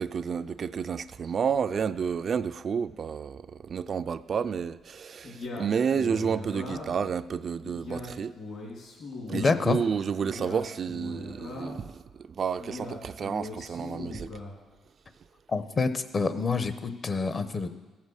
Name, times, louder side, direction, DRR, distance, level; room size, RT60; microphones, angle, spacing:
voice 1, 0.0-8.3 9.3-11.9 12.4-14.3, right 6 dB, 50° right, 0.3 m, -30 dB
Male speech man speaking, 5.2-7.1 7.6-9.6 10.2-11.9 12.6-14.6, left 2 dB, 60° left, 3.4 m, -40 dB
voice 2, 9.3-9.8 15.5-17.7, left 4 dB, 40° left, 0.9 m, -27 dB
14.5 x 7.4 x 6.4 m
cardioid pair, 90°, 0 cm